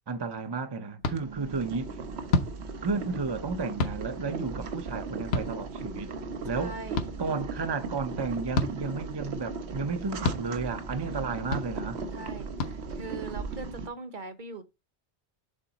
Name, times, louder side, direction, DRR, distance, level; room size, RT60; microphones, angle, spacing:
voice 1, 0.1-1.9 2.8-6.1 6.4-6.8 7.2-12.0, right 4 dB, 30° right, 0.5 m, -32 dB
sound 1, 1.0-1.2 2.3-2.5 3.8-4.0 5.3-5.5 7.0-7.1 8.5-8.7 10.2-10.4 11.5-11.7 12.6-12.7, left 3 dB, 65° left, 1.1 m, -27 dB
Boiling, 1.1-13.9, right 4 dB, 70° right, 1.1 m, -37 dB
voice 2, 1.2-1.7 6.5-7.1 11.0-11.5 12.1-14.6, right 3 dB, 45° right, 1.1 m, -42 dB
7.4 x 3.9 x 4.0 m
omnidirectional pair, 1.1 m